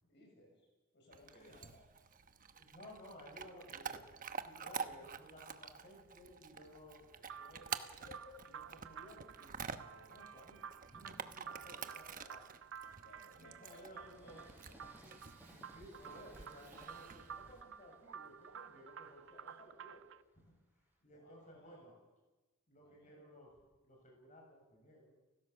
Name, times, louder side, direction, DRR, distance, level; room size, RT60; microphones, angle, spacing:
voice 1, 0.0-0.7 0.9-1.8 4.5-4.8 13.0-14.9 21.0-22.0 22.7-23.2, left 1 dB, 55° left, 1 dB, 6.7 m, -63 dB
Chewing mastication / Dog, 1.1-17.6, right 6 dB, 40° right, 1.0 m, -49 dB
voice 2, 2.5-4.1 4.4-12.5 13.1-14.4 15.0-20.0 21.0-21.9 22.7-23.5 23.8-25.2, equal, 35° left, 0 dB, 6.7 m, -57 dB
sound 1, 7.3-20.2, right 7 dB, 65° right, 0.6 m, -52 dB
Train, 8.4-9.8 10.4-21.0, right 1 dB, 10° right, 5.3 m, -64 dB
30.0 x 16.0 x 6.9 m, 1.1 s
head